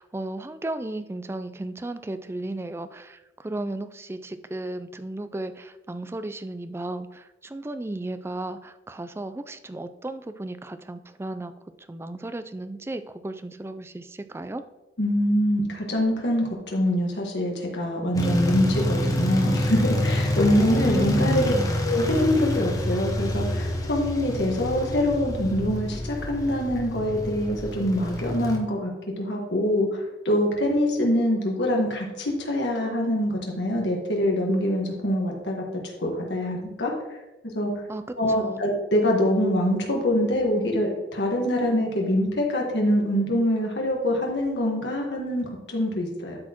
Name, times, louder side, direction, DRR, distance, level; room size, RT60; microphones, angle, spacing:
voice 1, 0.0-11.5 11.9-14.6 20.7-21.7 37.9-38.0 38.4-38.6, right 2 dB, 15° right, 11 dB, 0.3 m, -34 dB
voice 2, 15.0-21.5 21.8-28.9 29.2-35.6 36.0-36.9 37.5-37.8 38.2-46.4, left 1 dB, 75° left, 0 dB, 1.4 m, -24 dB
sound 1, 18.1-28.6, left 1 dB, 20° left, 0.8 m, -27 dB
12.0 x 4.3 x 2.9 m, 1.0 s
head